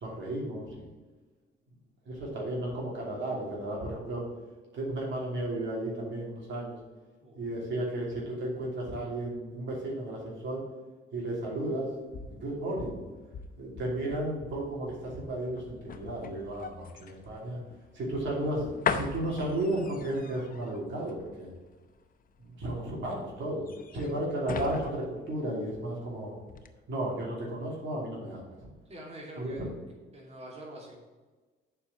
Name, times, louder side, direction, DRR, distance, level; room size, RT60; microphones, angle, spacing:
voice 1, 0.0-0.9 2.1-4.2 4.7-6.8 7.4-10.6 11.1-11.9 12.2-13.0 13.6-17.6 17.9-21.5 22.6-23.6 23.9-26.3 26.9-28.5 29.4-29.7, right 1 dB, 70° right, -3 dB, 2.8 m, -33 dB
sound 1, 11.7-26.1 26.5-26.7, left 6 dB, 45° left, 0.7 m, -40 dB
voice 2, 28.9-29.7 30.1-30.9, right 1 dB, 30° right, -3 dB, 2.5 m, -45 dB
7.2 x 5.0 x 7.0 m, 1.3 s
cardioid pair, 90°, 20 cm